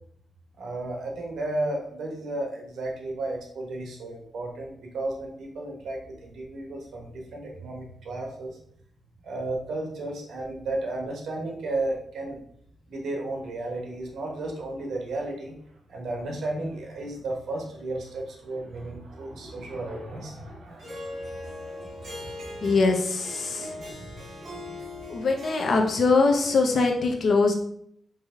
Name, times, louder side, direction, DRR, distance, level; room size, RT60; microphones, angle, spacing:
voice 1, 0.6-8.6 9.2-12.4 12.9-15.6 15.9-22.8 23.7-25.1, right 2 dB, 75° right, 1 dB, 1.2 m, -34 dB
Harp, 20.8-26.6, left 2 dB, 45° right, 2.0 m, -40 dB
voice 2, 22.6-23.7 25.1-27.5, left 3 dB, 55° left, 3 dB, 0.8 m, -22 dB
4.8 x 3.0 x 3.7 m, 0.67 s
cardioid pair, 110°, 0 cm